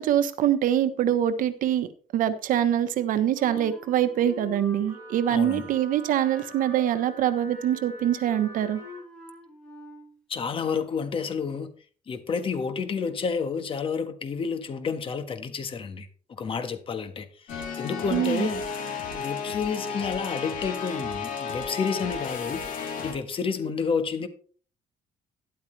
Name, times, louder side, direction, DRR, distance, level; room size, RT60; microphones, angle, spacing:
voice 1, 0.0-1.9 2.1-8.8 18.1-18.5, right 10 dB, 70° right, 1.1 m, -24 dB
Wind instrument woodwind instrument, 3.3-5.8 6.1-10.2, left 1 dB, 5° left, 5.1 m, -45 dB
Wind instrument woodwind instrument 2, 4.9-9.0, right 2 dB, 20° right, 6.6 m, -46 dB
voice 2, 5.3-5.7 10.3-11.7 12.1-18.6 19.1-22.6 23.0-24.3, left 5 dB, 40° left, 1.5 m, -30 dB
sound 1, 17.5-23.1, left 5 dB, 70° left, 3.6 m, -33 dB
12.5 x 11.0 x 3.3 m
cardioid pair, 155°, 15 cm